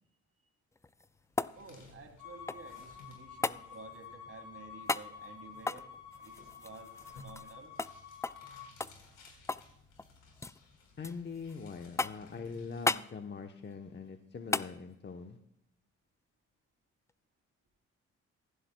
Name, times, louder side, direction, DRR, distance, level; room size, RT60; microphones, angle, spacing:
sound 1, 0.7-2.8 3.4-3.6 4.9-5.1 5.6-7.5 7.8-7.9 8.2-8.5 8.8-9.7 10.0-10.6 11.0-11.5 12.0-12.3 12.8-13.1 14.5-14.7 17.1-17.2, left 3 dB, 10° left, 0.3 m, -35 dB
sound 2, 1.1-12.9, left 3 dB, 75° left, 4.1 m, -59 dB
voice 1, 1.5-5.9 6.2-7.7, right 4 dB, 45° right, 4 dB, 2.9 m, -52 dB
Bowed string instrument, 2.2-8.7, left 7 dB, 90° left, 4.7 m, -50 dB
voice 2, 11.0-15.4, left 5 dB, 35° left, 5 dB, 0.9 m, -43 dB
16.0 x 15.0 x 2.3 m, 0.77 s
supercardioid pair, 55°, 32 cm